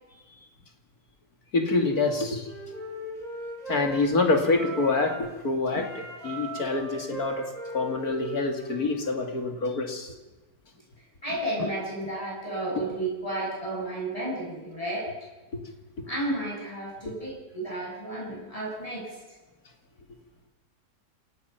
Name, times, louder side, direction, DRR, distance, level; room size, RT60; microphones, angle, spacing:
voice 1, 1.5-2.5 3.7-10.1, left 3 dB, 55° left, 4 dB, 2.9 m, -26 dB
Wind instrument woodwind instrument, 1.9-5.3 5.7-9.4, right 2 dB, 20° right, 6.9 m, -39 dB
voice 2, 11.0-15.1 16.0-19.2, right 1 dB, 20° left, -5 dB, 7.7 m, -32 dB
28.0 x 18.0 x 5.8 m, 1.2 s
omnidirectional pair, 1.8 m